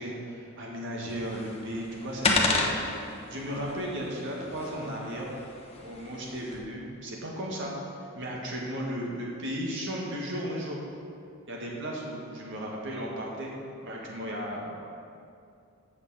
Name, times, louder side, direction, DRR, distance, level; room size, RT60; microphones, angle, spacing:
voice 1, 0.0-5.3 5.8-7.7 8.0-10.8 11.5-13.5 13.8-14.8, equal, 60° right, -2 dB, 1.8 m, -35 dB
sound 1, 1.1-6.6, left 3 dB, 30° left, 1.0 m, -32 dB
7.2 x 6.3 x 7.7 m, 2.5 s
head